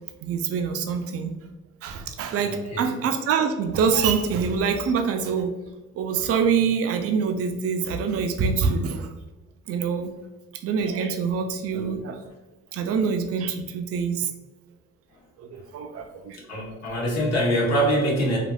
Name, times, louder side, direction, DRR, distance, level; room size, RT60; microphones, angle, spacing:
voice 1, 0.2-1.4 1.8-5.5 6.0-9.1 9.7-10.1 10.6-12.2 12.7-14.3 15.4-16.8, right 6 dB, 50° right, 6 dB, 0.4 m, -25 dB
voice 2, 2.4-2.9 16.5-18.4, equal, 60° left, -2 dB, 1.0 m, -24 dB
3.4 x 2.4 x 2.3 m, 1.1 s
cardioid pair, 90°, 30 cm